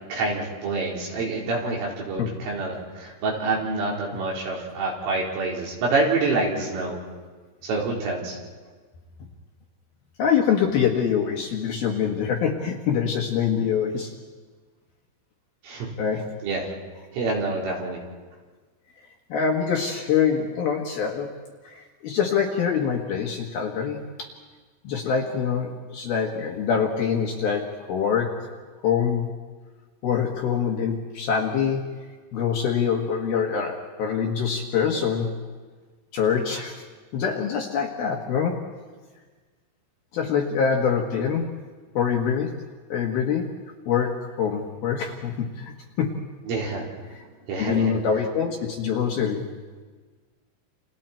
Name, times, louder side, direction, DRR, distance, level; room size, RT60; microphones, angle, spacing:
voice 1, 0.1-7.0 7.6-8.4 15.6-15.9 16.4-16.7 17.1-18.0 46.5-46.9 47.5-47.9, right 3 dB, 75° right, -3 dB, 6.9 m, -27 dB
voice 2, 10.2-14.1 16.0-16.3 19.3-21.3 21.6-24.3 24.8-28.4 28.8-29.3 30.0-31.9 32.3-35.3 36.1-36.8 37.1-38.6 40.1-41.5 41.9-42.6 42.9-43.5 43.9-45.7 46.0-46.2 47.6-49.5, left 7 dB, 65° left, 1 dB, 2.7 m, -25 dB
29.5 x 28.5 x 4.4 m, 1.4 s
omnidirectional pair, 5.9 m